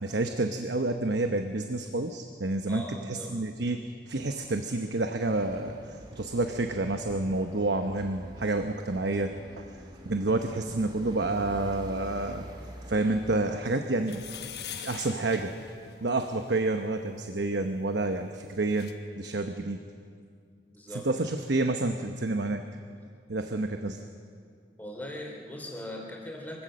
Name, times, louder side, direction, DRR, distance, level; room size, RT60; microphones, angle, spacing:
voice 1, 0.0-3.8 4.1-5.7 6.1-9.7 10.1-12.4 12.9-14.2 14.7-15.5 16.0-19.8 21.0-22.6 23.3-24.0, right 2 dB, 75° right, 6 dB, 1.0 m, -29 dB
voice 2, 2.7-3.4 20.7-21.1 24.8-26.6, left 1 dB, 10° left, -1 dB, 3.3 m, -40 dB
sound 1, 5.2-13.6, equal, 25° right, 2.6 m, -46 dB
sound 2, 14.0-16.6 18.3-18.4 18.5-18.9, left 9 dB, 60° left, 1.1 m, -43 dB
24.5 x 16.5 x 6.5 m, 2.2 s
head